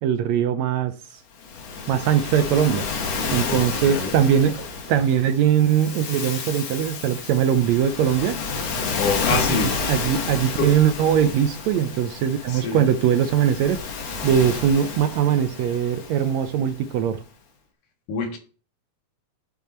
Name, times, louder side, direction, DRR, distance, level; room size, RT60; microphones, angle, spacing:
voice 1, 0.0-0.9 1.9-2.8 3.3-8.4 9.3-9.6 9.8-13.8 14.2-17.2, right 9 dB, 75° right, 1.7 m, -21 dB
Waves surf, 1.4-16.9, left 4 dB, 60° left, 2.5 m, -30 dB
voice 2, 3.5-4.1 9.0-9.7 10.6-10.7 12.5-12.8 18.1-18.4, left 5 dB, 80° left, 3.1 m, -26 dB
10.0 x 7.2 x 4.3 m
omnidirectional pair, 3.6 m